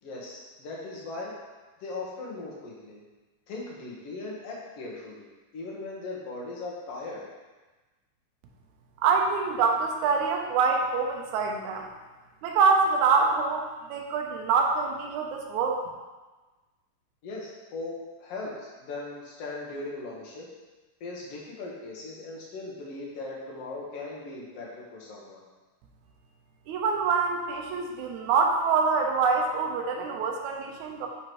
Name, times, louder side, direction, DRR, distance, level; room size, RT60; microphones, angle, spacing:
voice 1, 0.0-1.3 1.8-3.0 3.5-5.3 5.5-7.2 17.2-20.5 21.0-25.4, left 2 dB, 55° left, -4 dB, 2.1 m, -38 dB
voice 2, 9.0-11.9 12.4-13.7 13.9-15.8 26.7-31.1, right 5 dB, 75° right, 2 dB, 2.1 m, -25 dB
8.0 x 5.8 x 3.1 m, 1.2 s
omnidirectional pair, 3.6 m